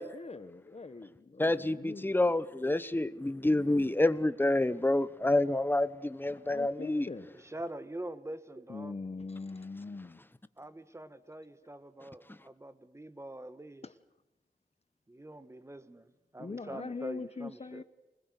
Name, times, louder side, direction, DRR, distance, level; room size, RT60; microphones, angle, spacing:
voice 1, 0.1-2.1 6.3-7.3 8.7-10.2 13.8-13.9 16.4-17.8, left 3 dB, 45° left, 1.1 m, -42 dB
voice 2, 1.4-7.1 12.3-12.4, left 1 dB, 15° left, 1.0 m, -28 dB
voice 3, 7.4-9.0 10.6-13.8 15.1-17.8, right 1 dB, 20° right, 1.3 m, -44 dB
25.5 x 20.5 x 8.2 m
wide cardioid pair, 95°, 15 cm